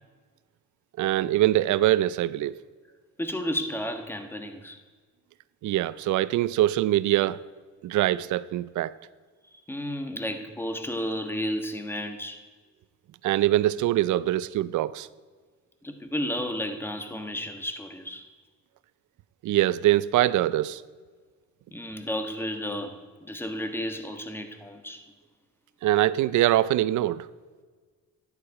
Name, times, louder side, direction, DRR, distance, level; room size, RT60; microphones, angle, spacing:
voice 1, 1.0-2.5 5.6-7.4 7.8-8.9 13.2-15.1 19.4-20.8 25.8-27.3, right 14 dB, 75° right, 0.5 m, -23 dB
voice 2, 3.2-4.8 9.5-12.4 15.8-18.2 21.7-25.0, equal, 5° left, 1.4 m, -32 dB
12.0 x 9.9 x 4.8 m
cardioid pair, 90°, 30 cm